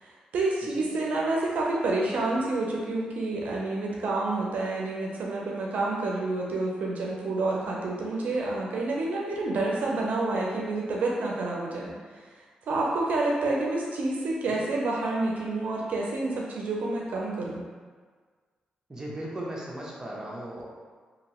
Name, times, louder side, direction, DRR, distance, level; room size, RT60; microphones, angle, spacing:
voice 1, 0.0-12.2 12.7-17.6, right 2 dB, 75° right, -2 dB, 0.5 m, -29 dB
voice 2, 18.9-20.6, right 1 dB, 20° right, -4 dB, 0.7 m, -37 dB
2.8 x 2.7 x 2.9 m, 1.5 s
cardioid pair, 75°, 3 cm